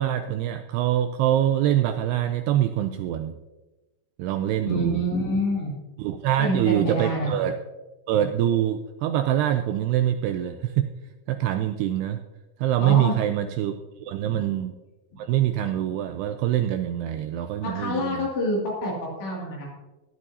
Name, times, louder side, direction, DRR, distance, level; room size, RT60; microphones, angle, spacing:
voice 1, 0.0-3.4 4.2-5.0 6.0-7.5 8.1-10.9 11.3-12.2 12.6-14.7 15.2-18.3, right 11 dB, 80° right, 7 dB, 2.4 m, -24 dB
voice 2, 4.7-5.7 6.4-7.4 12.8-13.2 14.2-14.4 15.1-15.2 17.6-19.7, equal, 75° left, -4 dB, 4.8 m, -27 dB
16.5 x 11.5 x 2.8 m, 1.1 s
omnidirectional pair, 5.0 m